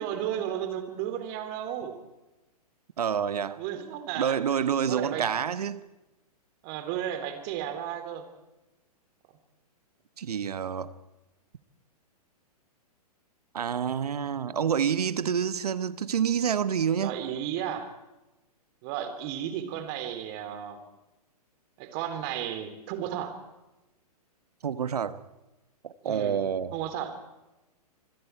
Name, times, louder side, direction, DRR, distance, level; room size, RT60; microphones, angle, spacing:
voice 1, 0.0-2.0 3.6-4.4 4.9-5.2 6.6-8.3 17.0-17.9 18.8-20.8 21.8-23.4 26.0-26.4 26.7-27.1, right 10 dB, 40° right, 3.4 m, -33 dB
voice 2, 3.0-3.6 4.2-5.8 10.2-10.9 13.5-17.2 24.6-25.2 25.8-26.8, right 8 dB, 75° right, 1.2 m, -28 dB
27.0 x 21.5 x 4.7 m
hypercardioid pair, 120°, 20 cm